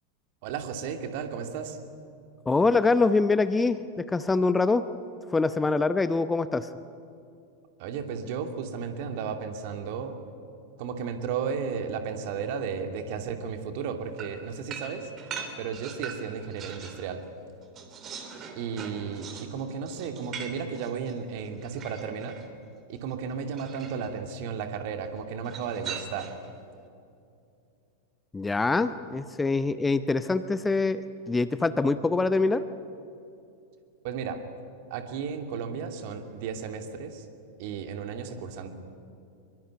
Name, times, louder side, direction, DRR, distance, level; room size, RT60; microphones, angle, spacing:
voice 1, 0.4-1.8 7.8-10.2 10.8-15.1 15.6-17.2 18.6-22.4 22.9-26.3 34.0-34.4 34.9-37.3 37.6-38.7, right 6 dB, 50° right, 6 dB, 2.6 m, -34 dB
voice 2, 2.5-4.8 5.3-6.7 28.3-31.0 31.3-32.6, left 3 dB, 10° left, 12 dB, 0.8 m, -24 dB
sound 1, 14.2-17.1 17.4-22.5 23.5-24.1 25.4-26.5, right 6 dB, 30° right, 3.3 m, -41 dB
25.0 x 23.0 x 9.4 m, 2.6 s
figure-of-eight pair, 90°, 0 cm